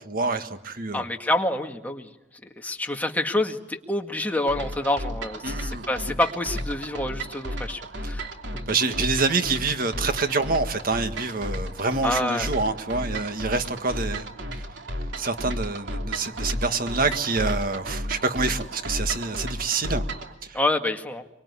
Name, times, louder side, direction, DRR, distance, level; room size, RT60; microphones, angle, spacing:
voice 1, 0.0-1.1 5.4-5.9 8.0-8.1 8.7-14.3 15.2-20.0 20.4-20.6, right 3 dB, 50° right, 8 dB, 1.8 m, -26 dB
voice 2, 0.9-2.1 2.6-8.3 12.0-12.5 20.5-21.2, left 1 dB, 10° left, 3 dB, 2.0 m, -27 dB
sound 1, 4.5-20.3, equal, 75° right, 3.0 m, -33 dB
24.5 x 24.5 x 9.8 m, 0.92 s
head